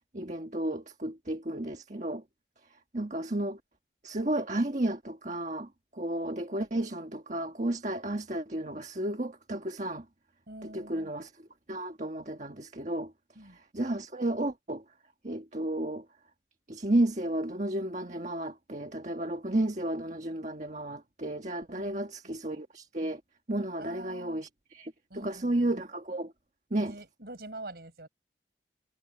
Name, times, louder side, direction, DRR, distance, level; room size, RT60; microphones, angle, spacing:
voice 1, 0.1-2.2 2.9-3.6 4.0-10.0 10.6-11.3 11.7-13.1 13.7-14.8 15.2-16.0 16.7-23.2 23.5-26.3 26.7-26.9, right 1 dB, 40° right, 1.5 m, -32 dB
voice 2, 10.5-11.1 13.4-13.6 21.7-22.4 23.8-24.4 25.1-25.7 26.7-28.1, right 2 dB, 60° right, 5.4 m, -46 dB
head